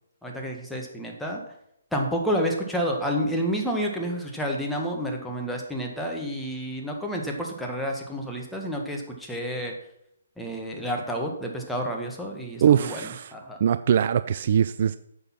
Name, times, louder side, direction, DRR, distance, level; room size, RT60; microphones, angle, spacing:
voice 1, 0.2-1.4 1.9-9.7 10.4-13.6, equal, ahead, 1.7 m, -30 dB
voice 2, 12.6-13.3 13.6-15.0, right 9 dB, 45° right, 0.4 m, -22 dB
9.7 x 6.8 x 6.0 m
figure-of-eight pair, 135°, 0 cm